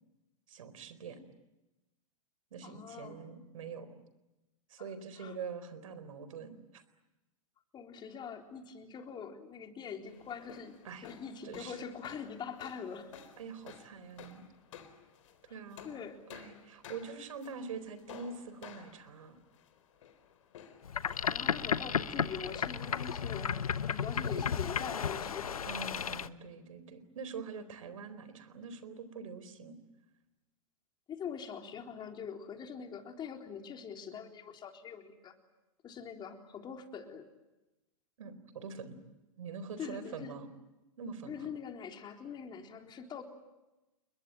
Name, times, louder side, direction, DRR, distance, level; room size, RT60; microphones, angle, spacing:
voice 1, 0.5-1.2 2.5-4.0 4.7-6.8 10.8-11.1 11.4-11.8 13.4-14.4 15.5-16.0 16.3-19.4 25.7-29.8 38.2-39.0 39.4-40.5 41.0-41.5, right 5 dB, 70° right, 13 dB, 4.2 m, -44 dB
voice 2, 2.6-3.2 5.2-5.4 7.7-13.1 15.8-16.2 21.3-23.6 23.9-25.7 31.1-35.3 35.8-37.3 39.8-40.4 41.3-43.2, left 7 dB, 25° left, 3 dB, 3.9 m, -43 dB
sound 1, 10.0-24.3, left 8 dB, 65° left, 4.0 m, -55 dB
Boat Water vehicle, 20.8-26.3, left 7 dB, 85° left, 1.1 m, -34 dB
29.5 x 22.0 x 9.0 m, 1.0 s
hypercardioid pair, 110°, 18 cm